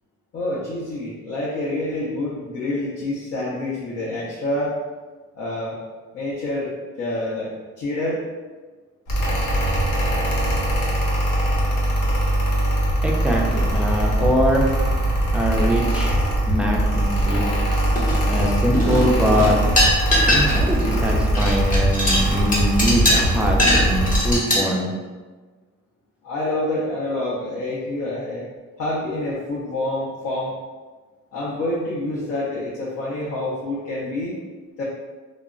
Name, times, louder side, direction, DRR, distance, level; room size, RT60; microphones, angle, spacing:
voice 1, 0.3-4.8 5.3-5.8 6.1-6.7 7.0-8.2 26.2-28.5 28.8-30.5 31.3-34.4 34.8-34.9, left 1 dB, 55° left, -6 dB, 0.7 m, -27 dB
Mechanical fan, 9.1-24.4, right 1 dB, 90° left, 0.8 m, -21 dB
voice 2, 13.0-14.7 15.3-16.2 16.5-17.5 18.3-19.6 20.3-24.9, equal, 5° right, -1 dB, 0.4 m, -23 dB
sound 1, 18.0-18.5 18.7-20.8 21.1-24.6, left 1 dB, 25° left, 0.8 m, -20 dB
2.1 x 2.0 x 3.6 m, 1.4 s
cardioid pair, 90°, 30 cm